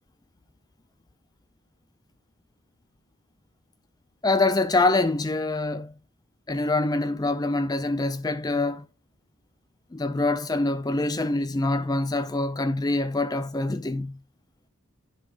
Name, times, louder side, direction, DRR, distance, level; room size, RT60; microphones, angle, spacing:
voice 1, 4.2-5.9 6.5-8.8 9.9-14.2, left 2 dB, 15° left, 0.4 m, -25 dB
11.0 x 5.5 x 2.9 m
head